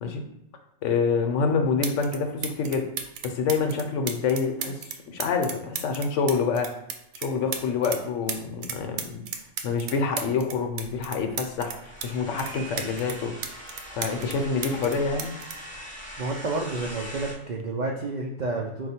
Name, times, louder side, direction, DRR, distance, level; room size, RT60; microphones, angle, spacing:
voice 1, 0.8-2.9 3.2-4.8 5.1-6.7 7.1-9.2 9.6-13.3 13.9-15.3, left 5 dB, 75° left, 5 dB, 0.9 m, -27 dB
sound 1, 1.3-1.4 1.8-2.2 2.4-8.0 8.3-12.1 12.4-14.4 14.6-16.5 17.4-17.6, right 7 dB, 90° right, 1.0 m, -35 dB
sound 2, 10.7-17.3, equal, 10° left, 0.6 m, -42 dB
voice 2, 16.2-18.9, right 3 dB, 70° right, -1 dB, 0.4 m, -30 dB
4.8 x 2.1 x 4.2 m, 0.85 s
omnidirectional pair, 1.4 m